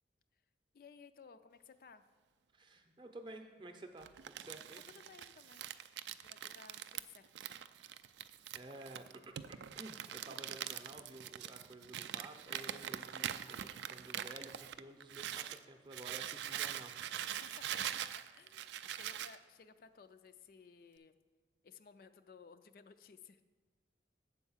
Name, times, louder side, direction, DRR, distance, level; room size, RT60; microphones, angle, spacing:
voice 1, 0.7-2.0 4.9-5.7 6.2-7.5 15.3-15.5 17.3-17.6 18.0-21.2 21.6-23.4, left 5 dB, 55° left, 10 dB, 0.3 m, -58 dB
voice 2, 2.5-4.8 8.5-16.9, right 2 dB, 25° right, 5 dB, 0.6 m, -52 dB
Crumpling crinkling, 4.0-15.6 15.9-19.4, right 10 dB, 80° right, 0.3 m, -43 dB
8.0 x 4.6 x 7.1 m, 1.4 s
head